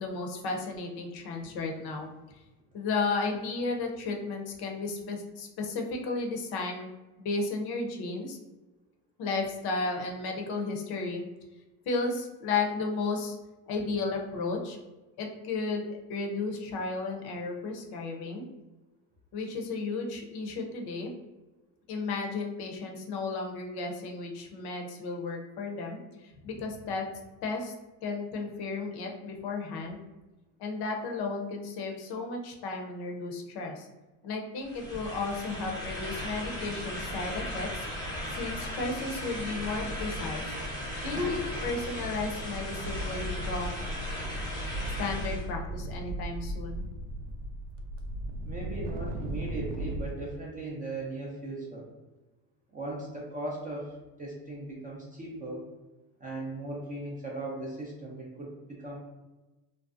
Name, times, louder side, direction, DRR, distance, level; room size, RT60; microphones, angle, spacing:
voice 1, 0.0-2.1 2.7-6.9 7.2-8.4 9.2-11.2 11.9-13.4 13.7-14.8 15.2-18.4 19.3-21.1 21.9-27.1 27.4-27.7 28.0-30.0 30.6-33.9 34.2-37.9 38.3-40.5 41.0-43.8 45.0-46.9, left 3 dB, 50° left, 2 dB, 0.6 m, -34 dB
sound 1, 34.6-45.5, left 1 dB, 10° left, 0.7 m, -37 dB
voice 2, 41.2-41.6 48.4-51.9 52.7-55.7 56.2-59.0, right 1 dB, 20° right, -4 dB, 0.4 m, -37 dB
sound 2, 41.4-41.5 41.7-50.1, right 1 dB, 65° right, 0.6 m, -37 dB
2.5 x 2.1 x 2.4 m, 1.1 s
supercardioid pair, 95°, 49 cm